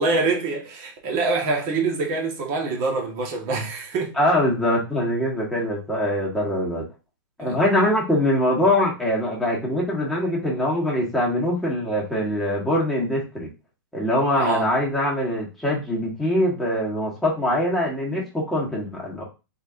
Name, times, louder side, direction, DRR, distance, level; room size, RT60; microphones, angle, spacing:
voice 1, 0.0-4.2 5.6-5.7 7.4-7.6 14.4-14.7, right 3 dB, 35° right, 1.3 m, -25 dB
voice 2, 4.2-6.8 7.4-13.5 13.9-19.2, left 1 dB, ahead, 1.4 m, -23 dB
4.2 x 3.6 x 2.5 m
hypercardioid pair, 150°, 11 cm